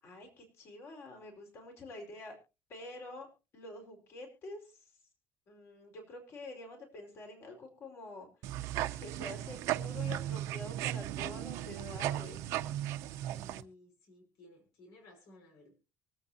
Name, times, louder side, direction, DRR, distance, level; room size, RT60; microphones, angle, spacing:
voice 1, 0.0-2.3 2.7-3.3 3.5-4.9 5.5-8.3 9.0-12.5, left 2 dB, 55° left, 2 dB, 4.7 m, -47 dB
sound 1, 8.4-13.6, right 13 dB, 75° right, 0.9 m, -36 dB
voice 2, 13.2-15.7, left 1 dB, 75° left, 2 dB, 5.4 m, -58 dB
24.0 x 8.3 x 2.8 m, 0.29 s
supercardioid pair, 95°, 5 cm